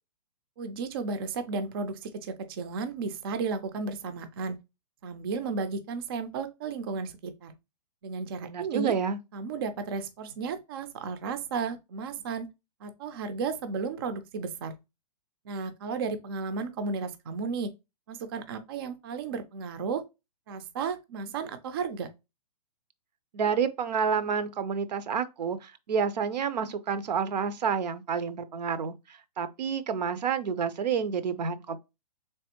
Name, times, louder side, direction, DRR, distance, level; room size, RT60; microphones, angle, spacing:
voice 1, 0.6-4.6 5.0-7.5 8.0-8.9 9.3-12.5 12.8-14.8 15.5-17.7 18.1-20.0 20.5-22.1, right 4 dB, 35° right, 0.4 m, -33 dB
voice 2, 8.4-9.2 23.3-31.8, right 6 dB, 80° right, 0.6 m, -29 dB
3.5 x 3.4 x 2.8 m
hypercardioid pair, 160°, 21 cm